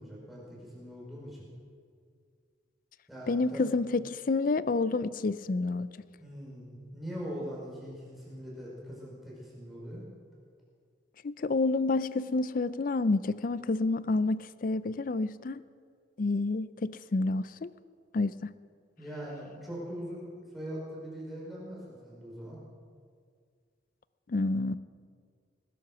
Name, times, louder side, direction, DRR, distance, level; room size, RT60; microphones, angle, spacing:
voice 1, 0.0-1.4 3.1-3.6 6.2-10.0 19.0-20.3 20.5-22.6, equal, ahead, 5.2 m, -41 dB
voice 2, 3.3-5.9 11.2-15.6 16.2-17.7 18.1-18.5 24.3-24.7, left 3 dB, 45° left, 0.4 m, -29 dB
19.5 x 11.0 x 6.2 m
head